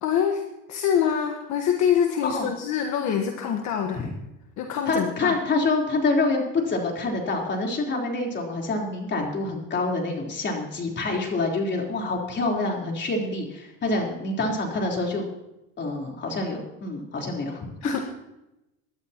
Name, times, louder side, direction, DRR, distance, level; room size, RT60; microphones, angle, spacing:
voice 1, 0.0-4.1 4.6-5.4 17.8-18.0, left 8 dB, 60° left, 3 dB, 1.5 m, -25 dB
voice 2, 4.9-15.2 15.8-17.6, left 3 dB, 35° left, 0 dB, 3.9 m, -26 dB
25.0 x 11.5 x 3.0 m, 0.92 s
cardioid pair, 125°, 33 cm